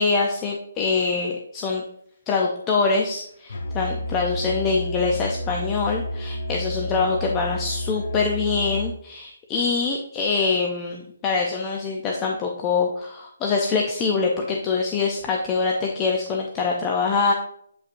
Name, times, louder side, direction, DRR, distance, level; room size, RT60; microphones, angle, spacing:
voice 1, 0.0-1.8 2.3-17.3, left 4 dB, 15° left, 0 dB, 0.5 m, -24 dB
Musical instrument, 3.5-9.0, equal, 55° left, 0.9 m, -30 dB
8.2 x 5.3 x 2.6 m, 0.69 s
hypercardioid pair, 175°, 0 cm